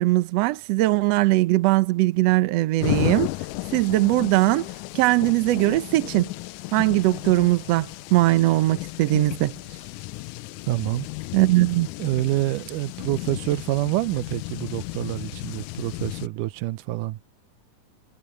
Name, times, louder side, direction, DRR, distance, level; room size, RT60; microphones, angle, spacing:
voice 1, 0.0-3.3 3.7-4.7 4.9-6.3 6.7-9.5 11.3-11.9, right 18 dB, 70° right, 1.7 m, -20 dB
sound 1, 2.8-16.3, left 20 dB, 85° left, 2.0 m, -34 dB
voice 2, 10.7-11.1 12.0-17.2, right 17 dB, 90° right, 2.2 m, -27 dB
omnidirectional pair, 3.6 m